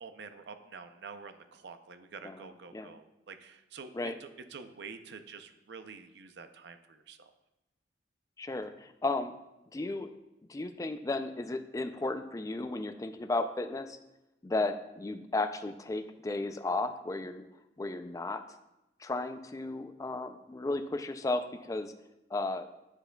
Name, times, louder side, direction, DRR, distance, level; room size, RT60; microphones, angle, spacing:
voice 1, 0.0-7.3, right 5 dB, 65° right, 9 dB, 0.5 m, -48 dB
voice 2, 8.4-9.3 9.7-10.1 10.5-14.0 14.4-17.4 17.8-18.4 19.0-21.9 22.3-22.7, left 2 dB, 20° left, 9 dB, 0.3 m, -34 dB
9.7 x 6.7 x 2.3 m, 0.95 s
head